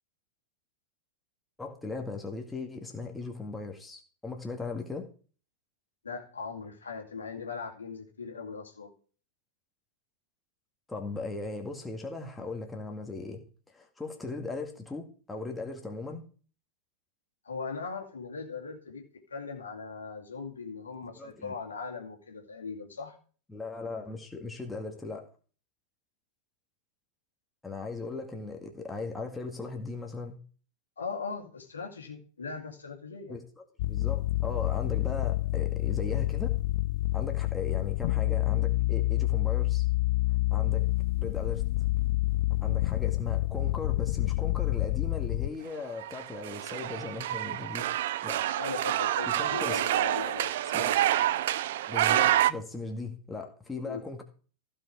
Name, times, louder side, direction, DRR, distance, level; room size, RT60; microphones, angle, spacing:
voice 1, 1.6-5.1 10.9-13.4 13.7-16.2 21.2-21.5 23.5-25.3 27.6-30.4 33.3-36.5 37.1-39.8 40.5-40.9 41.2-41.6 42.6-47.9 48.2-48.4 49.3-49.8 50.7-51.0 51.9-54.2, left 3 dB, 10° left, 2 dB, 1.9 m, -38 dB
voice 2, 6.0-8.9 17.4-23.2 31.0-33.4 37.7-37.9 48.6-50.7 53.8-54.0, left 4 dB, 70° left, 2 dB, 2.2 m, -39 dB
sound 1, 33.8-45.5, left 18 dB, 50° left, 0.4 m, -28 dB
sound 2, 46.0-52.5, right 13 dB, 55° right, 0.5 m, -28 dB
15.0 x 5.6 x 4.7 m, 0.40 s
figure-of-eight pair, 90°, 0 cm